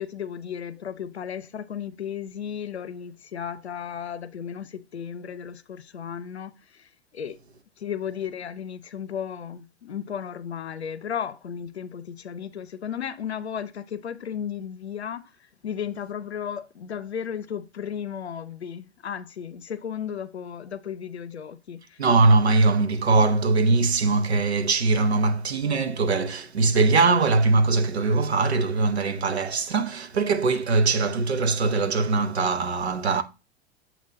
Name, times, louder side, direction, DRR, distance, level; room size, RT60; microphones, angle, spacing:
voice 1, 0.0-7.4 7.8-22.1, left 8 dB, 85° left, 0.6 m, -34 dB
voice 2, 22.0-33.2, right 3 dB, 85° right, 0.7 m, -21 dB
8.1 x 3.0 x 3.9 m
figure-of-eight pair, 90°, 32 cm